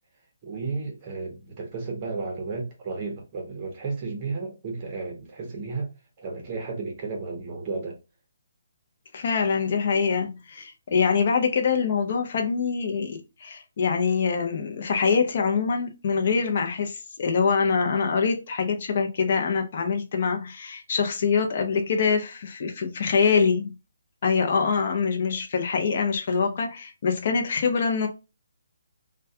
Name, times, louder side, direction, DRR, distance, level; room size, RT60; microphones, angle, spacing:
voice 1, 0.4-5.9 6.2-8.0, right 4 dB, 25° right, 0.7 m, -33 dB
voice 2, 9.1-23.7 24.2-28.1, left 5 dB, 40° left, 0.6 m, -24 dB
2.2 x 2.2 x 2.6 m
hypercardioid pair, 170°, 0 cm